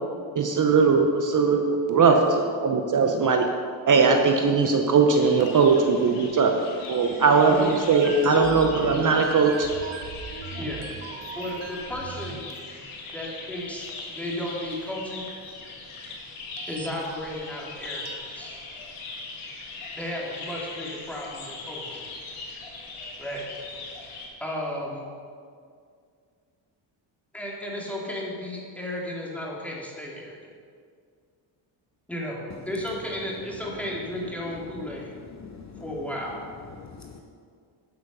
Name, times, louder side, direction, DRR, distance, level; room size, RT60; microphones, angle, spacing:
voice 1, 0.3-2.2 2.6-3.5 3.9-6.5 6.9-9.7, right 5 dB, 40° right, 4 dB, 0.9 m, -20 dB
voice 2, 1.9-2.3 7.5-7.9 10.6-10.8 11.4-12.4 13.1-15.2 16.7-18.6 20.0-22.1 23.2-23.4 24.4-25.1 27.3-30.4 32.1-35.2 35.8-36.4, left 1 dB, 5° left, -4 dB, 2.7 m, -34 dB
sound 1, 1.9-2.0 3.1-3.2 3.5-3.6 4.2-4.3 4.7-5.5 5.8-5.9 6.9-7.0 7.9-12.8 13.1-13.2 13.9-14.0 14.5-14.6 14.9-15.0 15.3-15.4 16.0-16.1 16.6-17.1 17.9-18.2, right 6 dB, 75° right, 1.3 m, -38 dB
sound 2, 5.1-24.3, left 3 dB, 85° left, 2.2 m, -40 dB
voice 3, 34.5-36.0 36.7-37.2, left 5 dB, 35° left, 3 dB, 0.8 m, -44 dB
12.0 x 6.1 x 5.5 m, 2.2 s
cardioid pair, 85°, 49 cm